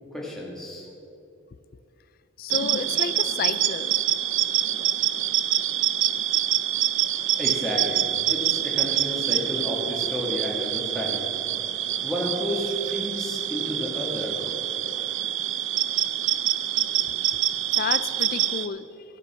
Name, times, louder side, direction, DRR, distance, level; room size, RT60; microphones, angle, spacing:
voice 1, 0.1-0.9 7.4-8.0 8.3-11.2 12.0-14.4, left 1 dB, ahead, -5 dB, 1.6 m, -31 dB
voice 2, 2.4-3.9 17.8-18.8, left 6 dB, 45° left, 15 dB, 0.3 m, -31 dB
sound 1, 2.5-18.7, right 12 dB, 65° right, 0.5 m, -26 dB
14.0 x 6.8 x 7.0 m, 2.7 s
head